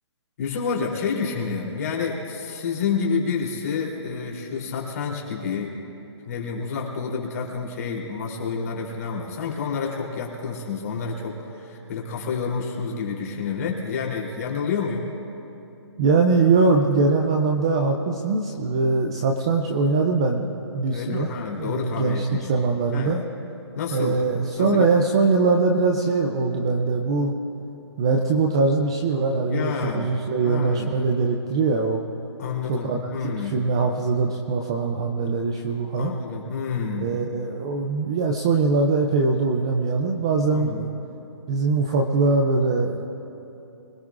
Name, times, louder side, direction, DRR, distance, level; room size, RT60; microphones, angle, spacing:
voice 1, 0.4-5.7 6.3-15.1 20.9-22.5 22.9-23.1 23.7-24.9 29.5-30.1 30.4-30.9 32.4-33.6 36.0-37.1 40.5-40.8, left 5 dB, 35° left, -2 dB, 3.3 m, -29 dB
voice 2, 16.0-20.5 20.7-23.2 23.9-27.3 28.0-32.0 32.7-36.1 37.0-40.9 41.5-43.0, right 4 dB, 10° right, 2 dB, 0.3 m, -22 dB
25.5 x 17.5 x 2.5 m, 2.9 s
hypercardioid pair, 165°, 15 cm